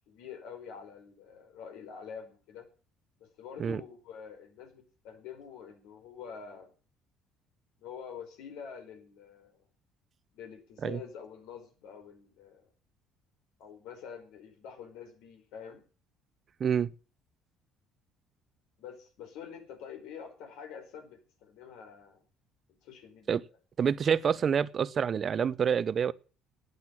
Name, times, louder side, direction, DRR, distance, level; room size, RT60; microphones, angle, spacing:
voice 1, 0.1-2.7 3.2-6.7 7.8-9.6 10.3-12.7 13.6-15.8 18.8-22.2 22.8-23.4, left 7 dB, 80° left, 4.9 m, -46 dB
voice 2, 16.6-16.9 23.3-23.4 23.8-26.1, right 7 dB, 40° right, 0.7 m, -27 dB
12.0 x 9.4 x 7.4 m
cardioid pair, 120°, 0 cm